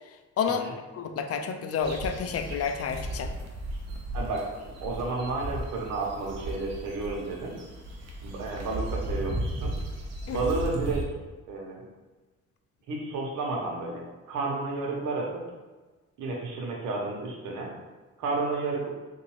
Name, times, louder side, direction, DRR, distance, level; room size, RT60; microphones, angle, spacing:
voice 1, 0.9-3.3 10.3-10.4, left 6 dB, 55° left, 7 dB, 0.4 m, -29 dB
sound 1, 1.8-11.0, right 1 dB, 60° right, 0.8 m, -35 dB
voice 2, 4.1-4.4 4.8-7.5 8.2-9.7 10.3-11.0 11.5-11.8 12.9-15.4 16.2-17.7 18.2-18.9, right 3 dB, 80° right, -1 dB, 0.9 m, -31 dB
3.8 x 2.6 x 3.0 m, 1.2 s
cardioid pair, 90°, 30 cm